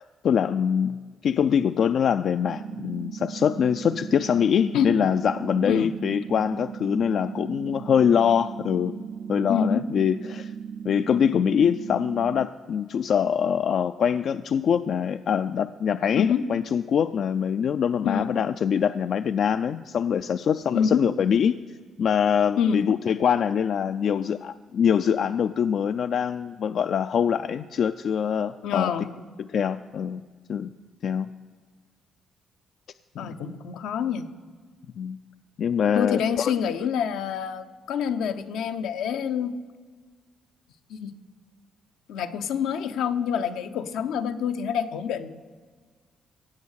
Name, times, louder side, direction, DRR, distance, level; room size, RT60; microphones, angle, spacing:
voice 1, 0.0-8.9 9.3-10.5 10.9-21.6 22.0-28.9 29.4-30.2 30.5-30.7 31.0-31.3 35.0-35.2 35.6-36.5, left 8 dB, 60° left, 11 dB, 0.3 m, -24 dB
sound 1, 2.5-12.5, right 7 dB, 55° right, 0.4 m, -37 dB
voice 2, 5.6-5.9 9.5-9.9 16.1-16.4 18.0-18.3 20.7-21.1 22.6-22.8 28.6-29.1 33.2-34.3 35.9-39.6 40.9-41.1 42.1-45.4, left 7 dB, 85° left, 8 dB, 0.7 m, -26 dB
17.0 x 7.5 x 6.4 m, 1.6 s
cardioid pair, 90°, 0 cm